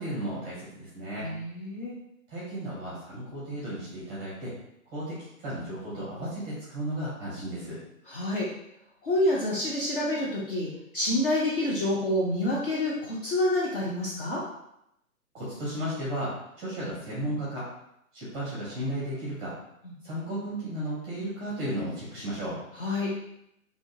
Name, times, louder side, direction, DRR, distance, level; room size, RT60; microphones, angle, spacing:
voice 1, 0.0-1.3 2.3-4.5 4.9-7.8 15.3-17.6 18.1-19.5 20.0-22.6, right 1 dB, 10° right, -8 dB, 0.7 m, -34 dB
voice 2, 1.2-2.0 8.1-8.5 9.0-14.4 22.8-23.1, left 1 dB, 40° left, -5 dB, 0.7 m, -28 dB
3.5 x 2.4 x 2.6 m, 0.79 s
figure-of-eight pair, 135°, 42 cm